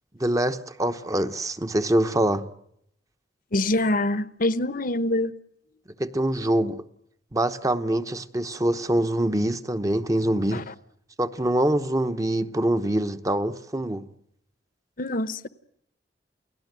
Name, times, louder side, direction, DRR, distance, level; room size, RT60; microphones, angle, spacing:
voice 1, 0.2-2.5 6.0-6.8 7.3-10.7 11.2-14.1, right 1 dB, 20° right, 1.0 m, -24 dB
voice 2, 3.5-5.3 10.5-10.7 15.0-15.5, left 1 dB, 50° left, 1.0 m, -25 dB
29.5 x 18.0 x 9.2 m
head